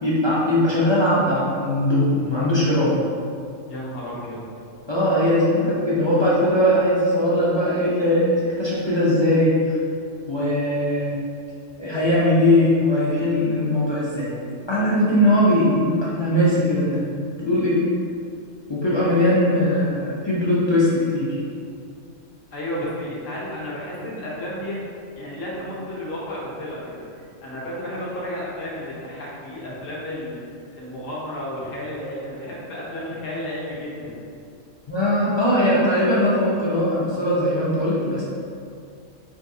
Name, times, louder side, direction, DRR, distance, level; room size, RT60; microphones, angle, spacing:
voice 1, 0.0-3.0 4.9-9.8 10.3-11.2 11.8-14.3 14.7-17.1 17.4-17.8 18.7-21.3 34.9-38.2, left 1 dB, 40° left, -8 dB, 0.3 m, -20 dB
voice 2, 3.7-4.4 22.5-24.8 25.1-30.4 30.8-34.2, left 1 dB, 75° left, -6 dB, 1.3 m, -32 dB
5.0 x 2.7 x 2.6 m, 2.4 s
omnidirectional pair, 1.4 m